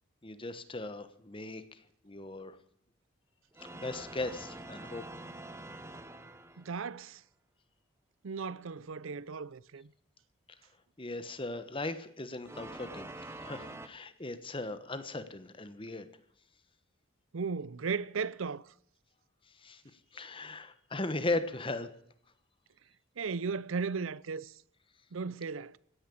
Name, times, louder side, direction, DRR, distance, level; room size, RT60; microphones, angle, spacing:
voice 1, 0.2-1.6 2.0-2.6 3.7-5.0 11.0-13.1 13.4-16.1 19.6-19.8 20.1-21.9, left 2 dB, 25° left, 1.2 m, -37 dB
sound 1, 3.5-6.9 12.4-13.9, right 1 dB, 15° right, 0.8 m, -46 dB
voice 2, 6.6-7.2 8.2-9.9 17.3-18.7 23.2-24.6 25.1-25.8, right 5 dB, 75° right, 0.6 m, -36 dB
16.0 x 10.0 x 8.5 m
head